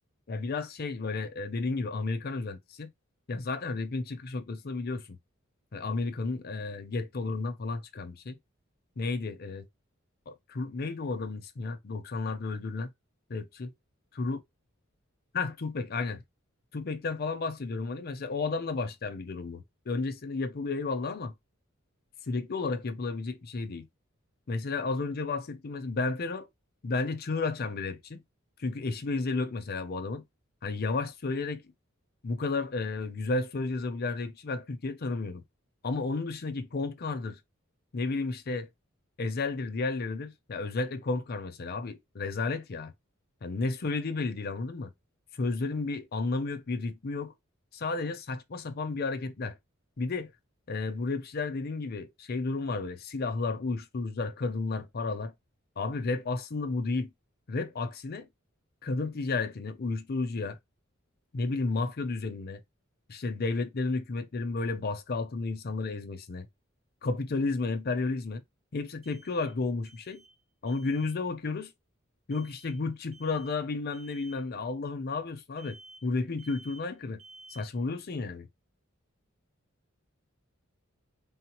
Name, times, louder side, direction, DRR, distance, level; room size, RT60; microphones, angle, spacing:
voice 1, 0.3-2.9 3.3-5.2 5.7-8.4 9.0-9.7 10.3-12.9 13.3-13.7 14.1-14.4 15.3-16.2 16.7-21.3 22.3-23.9 24.5-26.5 26.8-28.2 28.6-30.2 30.6-31.6 32.2-35.4 35.8-37.4 37.9-38.7 39.2-42.9 43.4-44.9 45.4-47.3 47.7-49.6 50.0-50.3 50.7-55.3 55.8-57.1 57.5-58.3 58.8-60.6 61.3-62.6 63.1-66.5 67.0-68.4 68.7-70.2 70.6-71.7 72.3-77.2 77.5-78.5, left 3 dB, 50° left, 0.5 m, -32 dB
sound 1, 65.8-65.9 69.0-69.6 69.9-70.4 70.7-71.2 72.3-72.8 73.1-73.6 73.9-74.4 75.6-76.1 76.4-76.9 77.2-77.8, right 2 dB, 90° right, 0.9 m, -54 dB
3.8 x 2.0 x 2.9 m
head